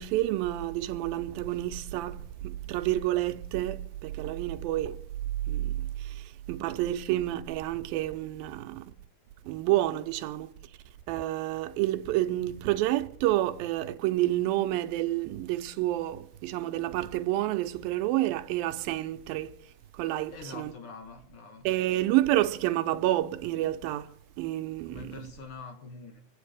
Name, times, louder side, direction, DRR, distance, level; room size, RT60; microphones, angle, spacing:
voice 1, 0.0-5.0 5.5-8.9 9.5-10.5 11.1-19.5 19.9-20.7 21.6-25.1, right 15 dB, 80° right, 2.5 m, -29 dB
voice 2, 20.3-21.7 24.8-26.2, left 4 dB, 55° left, 1.6 m, -44 dB
26.0 x 9.1 x 5.0 m
omnidirectional pair, 4.2 m